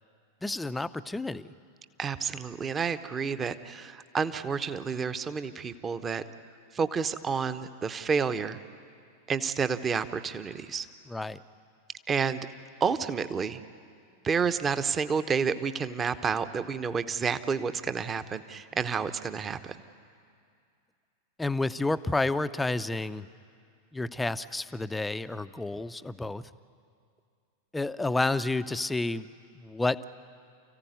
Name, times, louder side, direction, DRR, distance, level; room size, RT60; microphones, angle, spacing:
voice 1, 0.4-1.5 11.1-11.4 21.4-23.3 23.9-26.5 27.7-29.3 29.5-30.0, left 2 dB, 10° left, 12 dB, 0.6 m, -30 dB
voice 2, 2.0-6.2 6.7-8.6 9.3-10.9 12.1-12.4 12.8-13.6 14.2-19.8, right 6 dB, 20° right, 12 dB, 0.9 m, -30 dB
29.0 x 15.5 x 9.5 m, 2.3 s
figure-of-eight pair, 90°, 0 cm